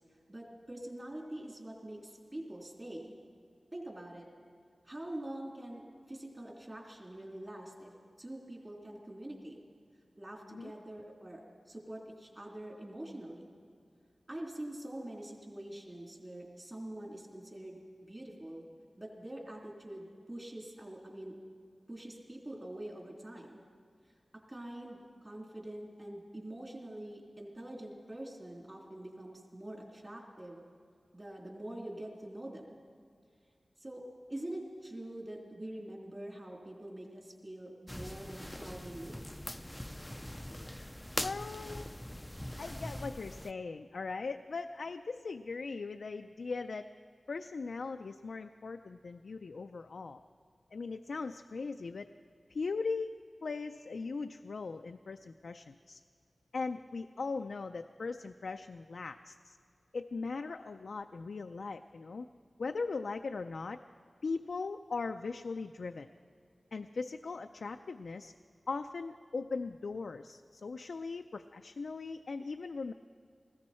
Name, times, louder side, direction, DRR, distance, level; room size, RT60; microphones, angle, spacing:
voice 1, 0.3-3.1 3.7-4.3 4.9-7.9 8.2-9.6 10.2-13.5 14.3-18.6 19.0-21.3 21.9-23.6 24.5-30.6 31.1-32.8 33.8-34.0 34.3-39.1, right 1 dB, 30° right, -1 dB, 3.3 m, -45 dB
sound 1, 37.9-43.5, left 1 dB, 10° left, 0.4 m, -42 dB
voice 2, 41.2-41.9 42.6-46.9 47.3-50.2 50.7-52.1 52.5-53.1 53.4-56.0 56.5-59.6 59.9-62.3 62.6-63.8 64.2-66.1 66.7-68.3 68.7-72.9, left 4 dB, 85° left, 6 dB, 0.4 m, -39 dB
20.0 x 16.0 x 4.3 m, 2.3 s
wide cardioid pair, 75°, 0 cm